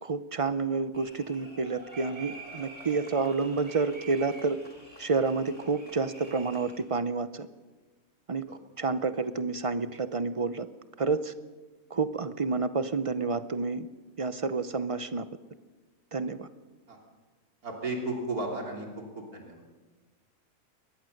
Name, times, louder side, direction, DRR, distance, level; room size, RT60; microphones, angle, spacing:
voice 1, 0.0-4.6 5.0-7.5 8.3-8.4 8.8-10.7 11.0-11.3 11.9-13.9 14.2-15.3 16.1-16.5, right 4 dB, 40° right, 12 dB, 0.5 m, -29 dB
sound 1, 0.9-6.8, right 2 dB, 25° right, 3.5 m, -47 dB
voice 2, 17.6-18.9 19.2-19.6, right 2 dB, 85° right, 0 dB, 3.5 m, -34 dB
22.5 x 19.5 x 6.5 m, 1.3 s
omnidirectional pair, 1.5 m